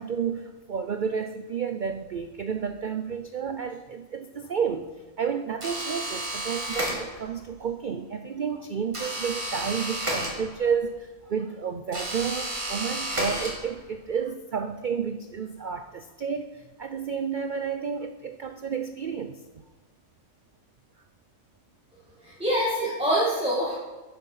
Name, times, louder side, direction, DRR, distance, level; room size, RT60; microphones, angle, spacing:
voice 1, 0.0-19.4, right 6 dB, 90° right, 8 dB, 0.4 m, -31 dB
sound 1, 5.6-7.4 8.9-10.8 11.9-14.0, right 1 dB, 20° right, 2.1 m, -32 dB
voice 2, 22.2-23.8, equal, 5° right, -6 dB, 1.9 m, -25 dB
10.5 x 7.1 x 5.6 m, 1.2 s
omnidirectional pair, 1.5 m